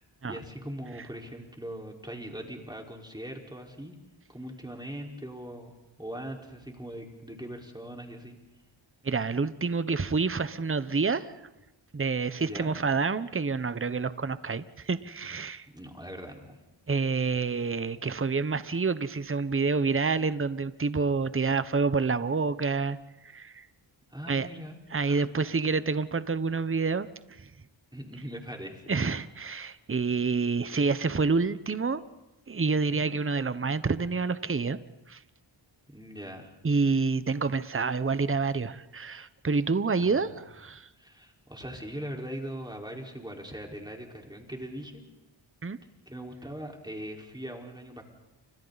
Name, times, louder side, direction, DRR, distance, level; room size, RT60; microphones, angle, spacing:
voice 1, 0.0-4.0 4.3-8.4 12.4-12.8 15.7-16.6 24.1-24.8 25.1-25.2 27.9-28.9 35.9-36.6 40.0-40.3 41.0-45.0 46.1-48.0, equal, 10° right, 1 dB, 4.6 m, -41 dB
voice 2, 9.0-11.3 11.9-15.7 16.9-23.0 23.2-23.7 24.3-24.5 24.9-27.5 28.9-32.0 32.5-34.8 35.1-35.2 36.6-40.9 45.6-45.8, right 4 dB, 25° right, 14 dB, 1.0 m, -28 dB
29.5 x 26.0 x 4.1 m, 1.0 s
cardioid pair, 55°, 47 cm